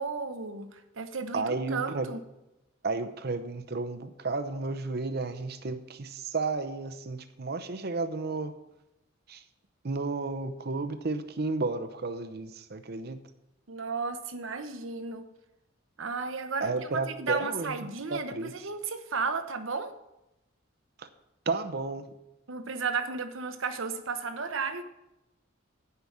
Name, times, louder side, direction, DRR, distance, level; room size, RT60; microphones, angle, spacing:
voice 1, 0.0-2.2 13.7-15.3 16.0-19.9 22.5-24.8, right 4 dB, 85° right, 9 dB, 0.9 m, -34 dB
voice 2, 1.3-2.1 2.8-6.1 6.3-8.5 9.3-9.4 9.8-13.2 16.6-17.7 18.1-18.5 21.5-22.0, right 3 dB, 55° right, 9 dB, 0.7 m, -32 dB
9.6 x 5.8 x 8.5 m, 0.92 s
head